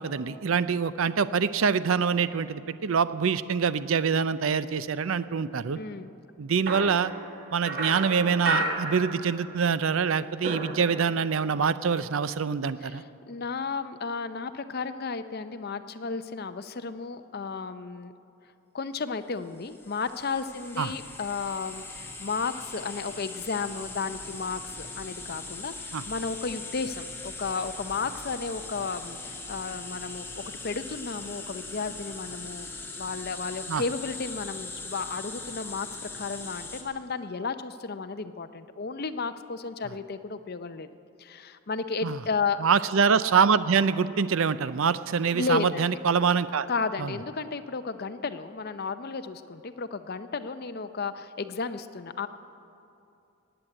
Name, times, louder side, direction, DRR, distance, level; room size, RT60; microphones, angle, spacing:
voice 1, 0.0-5.8 6.4-7.1 7.5-13.0 20.8-20.9 25.9-26.0 33.7-33.8 42.0-42.2 42.6-46.7 47.0-47.1, right 6 dB, 65° right, 15 dB, 0.5 m, -25 dB
voice 2, 5.7-6.1 12.8-18.1 18.7-40.9 41.2-42.7 45.3-45.8 46.7-52.3, left 4 dB, 45° left, 10 dB, 0.6 m, -33 dB
sound 1, 6.7-9.7 9.9-11.4, right 2 dB, 45° right, 1.5 m, -33 dB
sound 2, 19.6-36.8, left 3 dB, 10° left, 1.4 m, -40 dB
19.0 x 8.0 x 8.8 m, 2.7 s
head